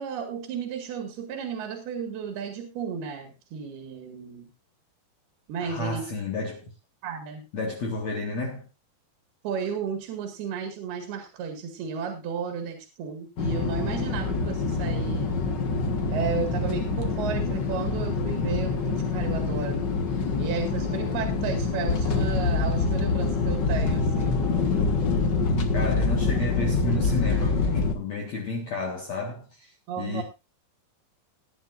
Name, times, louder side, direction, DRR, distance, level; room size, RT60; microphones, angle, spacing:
voice 1, 0.0-4.5 5.5-6.1 7.0-7.4 9.4-15.4 16.1-19.8 20.4-24.4 29.9-30.2, right 6 dB, 75° right, 3.9 m, -33 dB
voice 2, 5.6-6.7 7.5-8.7 25.7-30.2, left 3 dB, 50° left, 2.5 m, -32 dB
sound 1, 13.4-27.9, left 4 dB, 75° left, 1.0 m, -25 dB
19.0 x 10.5 x 2.6 m
omnidirectional pair, 4.6 m